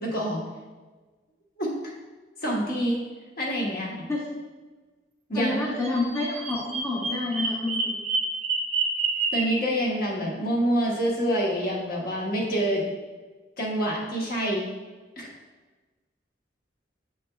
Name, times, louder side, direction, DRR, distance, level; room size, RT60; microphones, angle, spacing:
voice 1, 0.0-0.4 1.6-1.7 2.4-3.0 3.4-4.1 5.3-5.6 9.3-12.8 13.6-14.7 15.2-15.3, equal, 50° left, -3 dB, 1.2 m, -26 dB
voice 2, 5.3-8.0, left 2 dB, 15° left, -5 dB, 0.9 m, -29 dB
Bird vocalization bird call bird song, 5.8-9.7, right 3 dB, 35° right, 0.7 m, -28 dB
7.0 x 6.1 x 2.3 m, 1.3 s
head